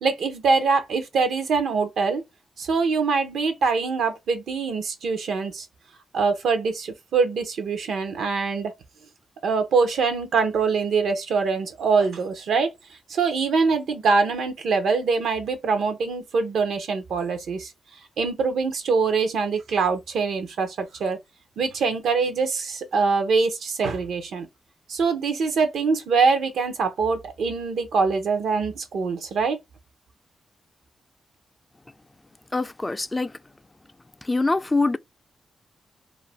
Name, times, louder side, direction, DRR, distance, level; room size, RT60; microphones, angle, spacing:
voice 1, 0.0-2.2 2.6-5.7 6.1-8.7 9.4-12.7 13.1-17.7 18.2-21.2 21.6-24.5 24.9-29.6, right 4 dB, 80° right, 0.6 m, -23 dB
voice 2, 32.5-33.3 34.2-35.0, left 3 dB, 25° left, 0.3 m, -24 dB
2.4 x 2.1 x 3.2 m
supercardioid pair, 50°, 0 cm